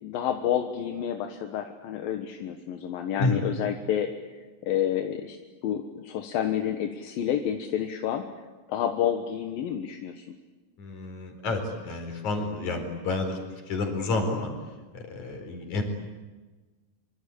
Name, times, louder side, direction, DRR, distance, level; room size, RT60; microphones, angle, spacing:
voice 1, 0.0-4.1 4.6-5.4 5.6-8.3 8.7-10.3, left 9 dB, 80° left, 5 dB, 3.2 m, -29 dB
voice 2, 10.8-13.4 13.7-14.5 14.9-15.8, left 3 dB, 55° left, 5 dB, 5.7 m, -29 dB
26.0 x 25.5 x 8.6 m, 1.3 s
omnidirectional pair, 4.1 m